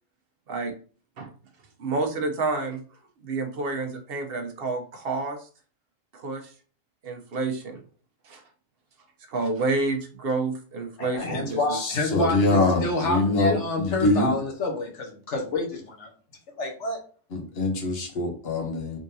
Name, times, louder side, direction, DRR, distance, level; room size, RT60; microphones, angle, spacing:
voice 1, 1.8-2.8 3.2-5.5 6.1-6.5 7.0-7.8 8.2-8.4 9.3-11.8, right 3 dB, 60° right, 5 dB, 0.9 m, -29 dB
voice 2, 11.0-16.1 16.6-17.0, left 2 dB, 85° left, 1 dB, 1.4 m, -28 dB
voice 3, 11.7-14.4 17.3-19.0, left 2 dB, 60° left, 3 dB, 1.2 m, -24 dB
3.7 x 3.7 x 2.7 m, 0.41 s
omnidirectional pair, 1.2 m